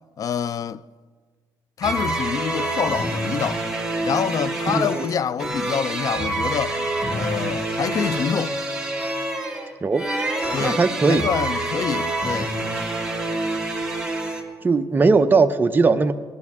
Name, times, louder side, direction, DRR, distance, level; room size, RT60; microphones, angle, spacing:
voice 1, 0.2-0.8 1.8-3.7 4.0-6.8 7.1-8.6 10.5-10.8 11.1-12.5, left 7 dB, 40° left, 0.4 m, -26 dB
sound 1, 1.8-14.4, right 2 dB, 5° right, 2.0 m, -27 dB
voice 2, 4.7-5.1 9.8-10.1 10.6-11.3 14.6-16.1, right 4 dB, 20° right, 0.6 m, -19 dB
18.5 x 11.5 x 3.6 m
cardioid pair, 115°, 9 cm